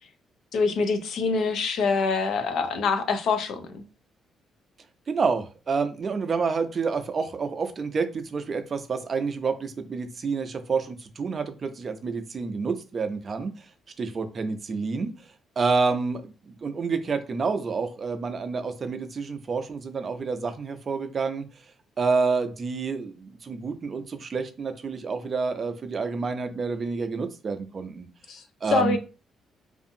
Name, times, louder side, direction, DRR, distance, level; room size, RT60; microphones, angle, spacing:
voice 1, 0.5-3.8 28.3-28.4 28.7-29.0, left 4 dB, 75° left, 0.4 m, -25 dB
voice 2, 5.1-13.5 14.0-15.1 15.6-21.4 22.0-28.1 28.6-29.0, right 4 dB, 40° right, 0.4 m, -28 dB
2.6 x 2.4 x 2.6 m
cardioid pair, 90°, 0 cm